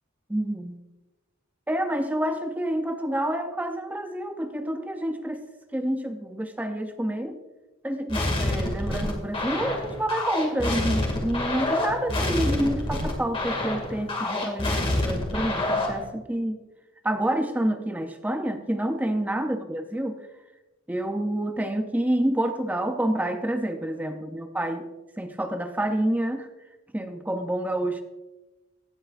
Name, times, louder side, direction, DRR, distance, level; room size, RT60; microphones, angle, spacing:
voice 1, 0.3-0.8 1.7-7.4 7.8-16.6 17.0-20.3 20.9-24.9 25.2-26.5 26.9-28.0, right 1 dB, 10° right, 7 dB, 0.5 m, -28 dB
sound 1, 8.1-16.0, left 1 dB, 25° left, 2.2 m, -27 dB
16.5 x 8.2 x 2.5 m, 1.1 s
head